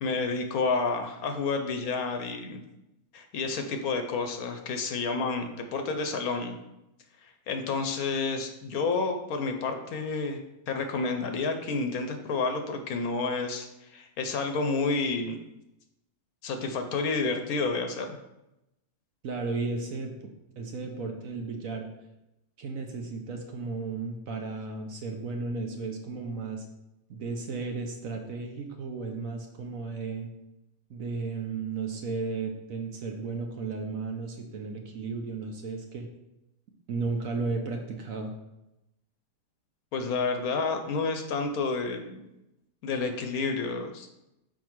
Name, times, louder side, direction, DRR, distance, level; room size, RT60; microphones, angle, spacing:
voice 1, 0.0-2.6 3.1-6.6 7.2-10.4 10.7-15.4 16.4-18.2 39.9-42.3 42.8-44.2, left 4 dB, 65° left, 5 dB, 1.1 m, -30 dB
voice 2, 19.2-21.9 22.6-26.7 27.1-30.3 30.9-36.1 36.9-38.3, right 4 dB, 60° right, 3 dB, 1.1 m, -34 dB
5.9 x 4.5 x 4.6 m, 0.91 s
omnidirectional pair, 1.8 m